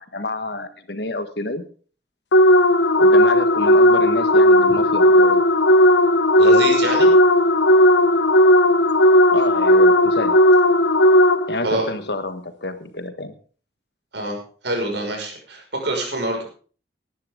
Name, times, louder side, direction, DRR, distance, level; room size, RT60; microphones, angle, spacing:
voice 1, 0.0-1.6 3.0-5.4 9.3-10.4 11.5-13.3, left 2 dB, 65° left, 9 dB, 1.6 m, -29 dB
sound 1, 2.3-11.7, left 1 dB, 85° left, 1.0 m, -14 dB
voice 2, 6.4-7.1 11.6-11.9 14.1-14.4 14.6-16.4, right 2 dB, 75° right, 2 dB, 5.8 m, -25 dB
18.0 x 11.0 x 3.8 m, 0.40 s
head